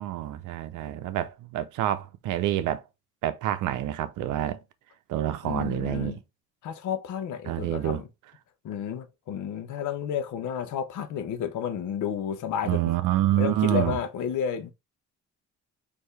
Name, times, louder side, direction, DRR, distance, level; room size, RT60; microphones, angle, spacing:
voice 1, 0.0-2.8 3.2-4.6 5.1-6.2 7.5-8.0 12.6-14.0, right 13 dB, 85° right, 0.6 m, -27 dB
voice 2, 5.4-6.2 6.6-8.0 8.6-12.8 13.4-14.7, left 8 dB, 80° left, 0.8 m, -31 dB
4.5 x 2.8 x 3.3 m
cardioid pair, 90°, 30 cm